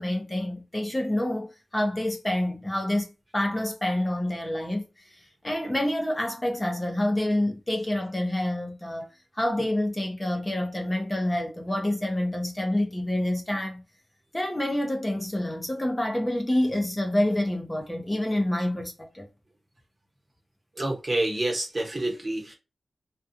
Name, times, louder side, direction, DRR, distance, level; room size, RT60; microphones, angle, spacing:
voice 1, 0.0-9.1 9.3-13.8 14.3-19.3, left 1 dB, 20° left, 0.7 m, -27 dB
voice 2, 20.8-22.5, right 2 dB, 40° right, 1.1 m, -28 dB
2.4 x 2.3 x 2.6 m
cardioid pair, 50°, 0 cm